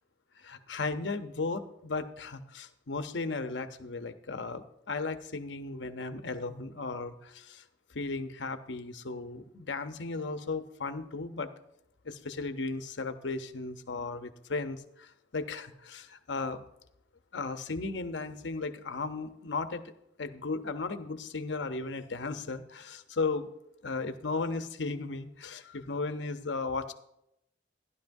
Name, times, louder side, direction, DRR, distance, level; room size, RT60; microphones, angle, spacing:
voice 1, 0.4-7.6 7.9-11.5 12.0-16.6 17.3-19.8 20.2-23.5 23.8-26.9, left 3 dB, 80° left, 9 dB, 0.8 m, -35 dB
14.0 x 11.5 x 2.7 m, 0.79 s
head